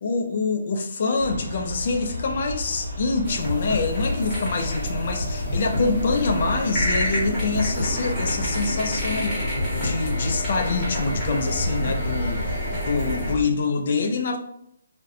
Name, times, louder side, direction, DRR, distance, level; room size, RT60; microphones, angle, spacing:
voice 1, 0.0-9.4 9.7-12.4 12.9-14.4, left 4 dB, 40° left, 4 dB, 0.3 m, -25 dB
Aircraft, 1.2-13.5, equal, 85° right, 0.8 m, -32 dB
sound 1, 3.2-13.3, left 1 dB, 5° left, 0.9 m, -28 dB
2.6 x 2.1 x 2.5 m, 0.72 s
hypercardioid pair, 175°, 0 cm